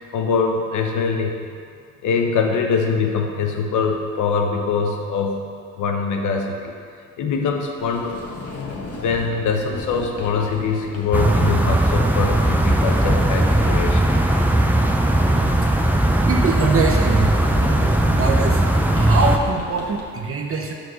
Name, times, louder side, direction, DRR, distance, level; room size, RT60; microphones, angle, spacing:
voice 1, 0.1-1.4 2.0-5.4 5.8-6.7 7.2-8.2 8.9-14.1, left 5 dB, 80° left, 3 dB, 1.0 m, -23 dB
Sliding door, 7.8-20.0, left 3 dB, 50° left, 1.5 m, -35 dB
sound 1, 11.1-19.4, right 1 dB, 5° right, 0.6 m, -18 dB
voice 2, 16.3-17.5 18.1-18.6 18.9-20.7, right 4 dB, 45° right, 1 dB, 0.8 m, -23 dB
6.2 x 5.0 x 6.4 m, 2.3 s
cardioid pair, 90°, 30 cm